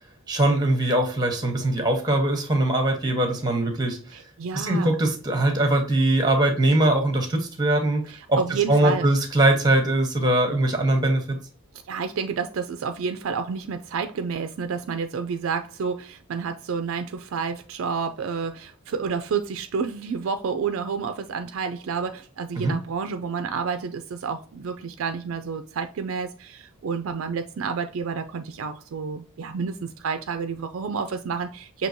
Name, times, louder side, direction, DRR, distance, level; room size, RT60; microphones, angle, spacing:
voice 1, 0.3-4.0 4.5-8.0 8.3-8.4 8.7-11.2 22.6-22.7, right 1 dB, 20° right, 1.0 m, -21 dB
voice 2, 4.1-4.9 8.1-9.1 11.9-31.9, right 5 dB, 60° right, 0.4 m, -30 dB
6.0 x 2.8 x 2.7 m
head